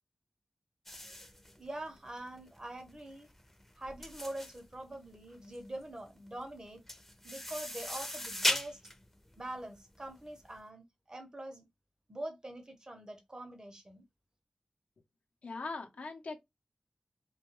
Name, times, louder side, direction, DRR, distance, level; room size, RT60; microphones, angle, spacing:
sound 1, 0.9-10.5, left 1 dB, 10° left, 0.5 m, -39 dB
voice 1, 1.0-3.3 3.8-6.8 7.2-8.8 9.4-11.6 12.1-14.0, right 1 dB, 30° right, 0.7 m, -44 dB
voice 2, 15.4-16.4, left 3 dB, 85° left, 0.6 m, -40 dB
2.2 x 2.2 x 2.9 m
wide cardioid pair, 90°, 2 cm